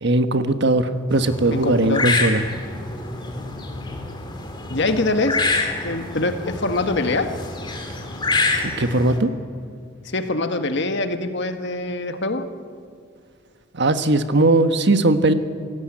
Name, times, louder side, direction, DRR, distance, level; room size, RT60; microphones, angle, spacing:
voice 1, 0.0-2.4 8.6-9.3 13.7-15.3, right 2 dB, 60° right, 9 dB, 1.3 m, -19 dB
sound 1, 1.1-9.2, left 3 dB, 25° left, 2.8 m, -27 dB
voice 2, 1.5-2.1 4.7-5.4 5.8-7.3 10.0-12.5, left 2 dB, 60° left, 7 dB, 1.6 m, -24 dB
27.0 x 16.5 x 8.8 m, 2.3 s
head